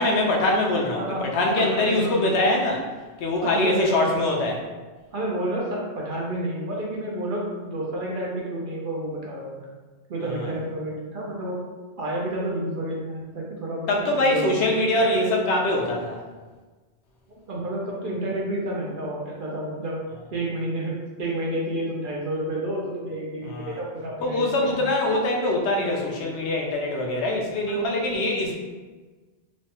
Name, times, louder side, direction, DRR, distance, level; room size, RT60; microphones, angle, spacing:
voice 1, 0.0-2.9 3.2-4.6 10.3-10.5 13.9-16.2 23.4-23.8 24.2-28.5, left 2 dB, 75° left, 0 dB, 0.8 m, -23 dB
voice 2, 1.6-2.3 3.4-4.3 5.1-9.7 10.1-11.6 12.0-14.6 17.5-20.0 20.3-24.8 27.7-27.9, right 1 dB, 55° right, -3 dB, 0.6 m, -30 dB
3.1 x 2.1 x 2.8 m, 1.3 s
omnidirectional pair, 1.2 m